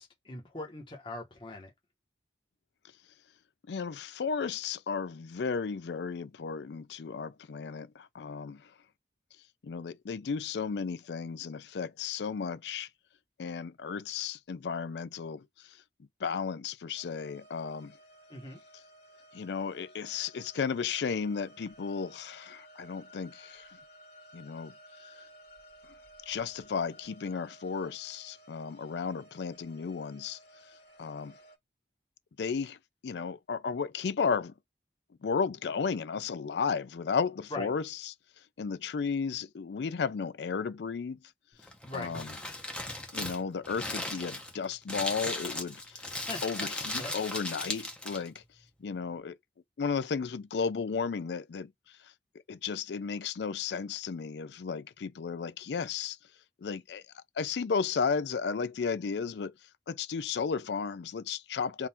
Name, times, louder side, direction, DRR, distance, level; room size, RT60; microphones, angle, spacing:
voice 1, 0.0-1.7 18.3-18.6 37.5-37.7 41.8-42.1 46.3-46.7 46.9-47.1, left 2 dB, 30° left, 1.2 m, -41 dB
voice 2, 3.7-8.6 9.6-12.9 13.4-15.4 16.2-17.9 19.3-23.7 24.3-24.7 26.3-30.4 31.0-31.3 32.4-32.8 33.0-34.5 35.2-38.1 38.6-41.2 41.9-42.3 43.1-48.4 48.8-49.4 49.8-51.7 52.5-56.2 56.6-59.5 59.9-61.9, left 5 dB, 75° left, 0.4 m, -34 dB
sound 1, 16.9-31.6, right 1 dB, 60° left, 2.0 m, -56 dB
Crumpling crinkling, 41.6-48.4, left 1 dB, 5° left, 0.8 m, -37 dB
3.7 x 2.5 x 4.2 m
head